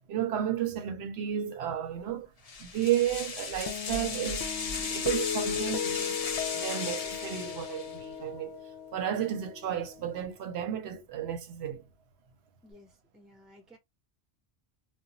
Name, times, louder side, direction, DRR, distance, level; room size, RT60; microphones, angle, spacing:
voice 1, 0.1-2.3 2.6-6.1 6.5-8.6 8.9-11.8, right 10 dB, 70° right, 0.8 m, -32 dB
sound 1, 2.5-8.0, left 5 dB, 45° left, 0.5 m, -36 dB
sound 2, 3.7-10.2, left 8 dB, 75° left, 0.8 m, -37 dB
voice 2, 12.6-13.8, left 1 dB, ahead, 0.7 m, -56 dB
2.8 x 2.2 x 2.6 m
omnidirectional pair, 1.2 m